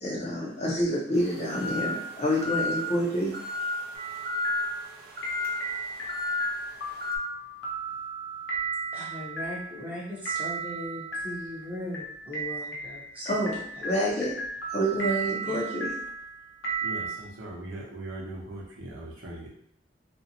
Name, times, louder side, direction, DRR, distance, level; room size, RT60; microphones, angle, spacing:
voice 1, 0.0-3.3 13.3-14.4 14.7-15.9, equal, 35° left, -3 dB, 0.5 m, -28 dB
sound 1, 1.1-7.2, left 2 dB, 50° right, 0.4 m, -33 dB
sound 2, 3.9-17.1, right 3 dB, 80° left, 0.7 m, -35 dB
voice 2, 8.9-13.3 15.5-15.6, left 1 dB, 10° right, -7 dB, 0.7 m, -38 dB
voice 3, 16.8-19.5, right 1 dB, 90° right, -4 dB, 0.7 m, -40 dB
2.5 x 2.1 x 2.8 m, 0.71 s
head